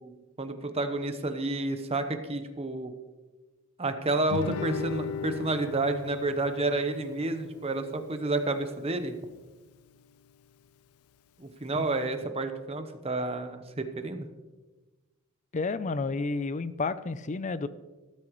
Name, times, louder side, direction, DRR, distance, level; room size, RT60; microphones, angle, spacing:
voice 1, 0.0-2.9 3.8-9.1 11.4-14.3, right 2 dB, 30° right, 8 dB, 0.9 m, -30 dB
Guitar, 4.3-9.4, left 6 dB, 90° left, 0.4 m, -39 dB
voice 2, 15.5-17.7, left 3 dB, 35° left, 14 dB, 0.5 m, -31 dB
13.5 x 13.0 x 3.1 m, 1.2 s
head